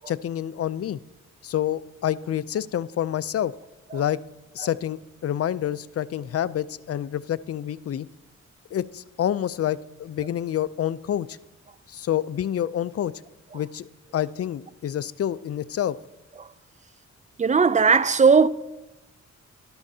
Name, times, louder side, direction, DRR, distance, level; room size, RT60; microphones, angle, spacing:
voice 1, 0.1-1.0 1.4-3.5 3.9-4.2 4.5-8.1 8.7-11.4 11.9-13.1 13.5-13.9 14.1-16.0, left 11 dB, 50° left, 0.4 m, -28 dB
voice 2, 17.4-18.5, right 5 dB, 25° right, 0.4 m, -17 dB
12.5 x 11.5 x 2.7 m
cardioid pair, 65°, 30 cm